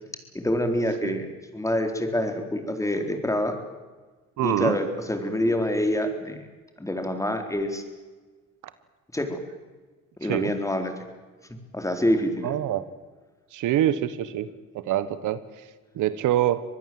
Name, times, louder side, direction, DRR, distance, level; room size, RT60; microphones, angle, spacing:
voice 1, 0.3-1.3 1.5-3.5 4.4-6.4 6.8-7.8 9.1-9.4 10.2-10.9 11.7-12.5, left 1 dB, 10° left, 5 dB, 4.0 m, -26 dB
voice 2, 4.4-4.8 10.3-10.5 12.4-12.8 13.5-14.5 14.7-15.4 15.9-16.6, right 12 dB, 85° right, 14 dB, 1.3 m, -25 dB
25.0 x 19.5 x 7.8 m, 1.3 s
cardioid pair, 90°, 30 cm